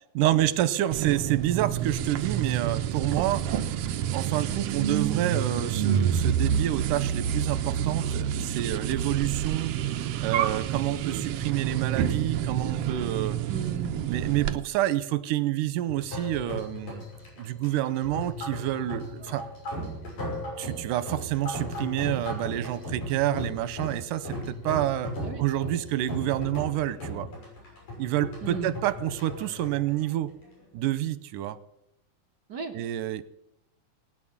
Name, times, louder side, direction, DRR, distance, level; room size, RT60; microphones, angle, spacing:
voice 1, 0.2-3.5 4.1-9.7 10.2-13.4 14.1-17.1 17.4-19.5 20.6-25.1 25.4-27.3 28.0-30.3 30.7-31.6 32.7-33.2, right 13 dB, 90° right, 15 dB, 2.3 m, -28 dB
sound 1, 0.9-14.6, right 9 dB, 70° right, 1.5 m, -28 dB
voice 2, 13.5-13.9 25.2-25.4 28.4-28.7 32.5-32.7, right 5 dB, 45° right, 2 dB, 1.6 m, -35 dB
sound 2, 15.9-30.8, equal, 85° left, 7.7 m, -37 dB
18.5 x 9.8 x 7.2 m, 0.82 s
omnidirectional pair, 3.7 m